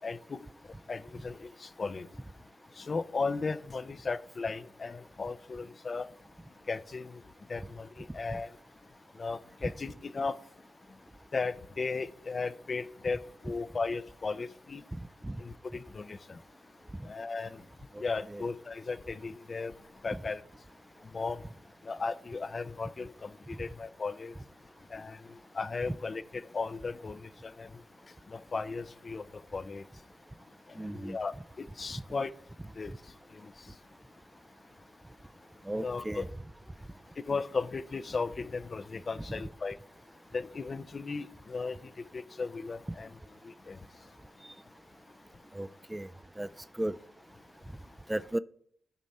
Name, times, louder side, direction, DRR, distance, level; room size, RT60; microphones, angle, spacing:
voice 1, 0.0-0.4 0.9-2.1 2.8-6.1 6.7-7.2 7.5-8.5 9.2-10.3 11.3-13.2 13.4-14.8 15.4-16.2 17.1-17.5 18.0-19.7 20.0-20.4 21.1-21.4 21.9-23.3 23.6-24.3 24.9-25.2 25.5-26.2 26.5-27.7 28.3-29.2 29.5-29.8 31.0-31.3 31.6-32.3 32.8-32.9 35.8-36.2 37.3-39.8 40.3-41.8 42.1-43.1 43.7-43.8, left 4 dB, 45° left, 0.5 m, -35 dB
voice 2, 17.9-18.5 30.8-31.2 35.7-36.3 39.3-39.4 45.5-46.1 46.4-46.5 46.8-47.0 48.1-48.4, right 1 dB, 15° right, 0.4 m, -35 dB
12.5 x 5.2 x 4.3 m
supercardioid pair, 50°, 0 cm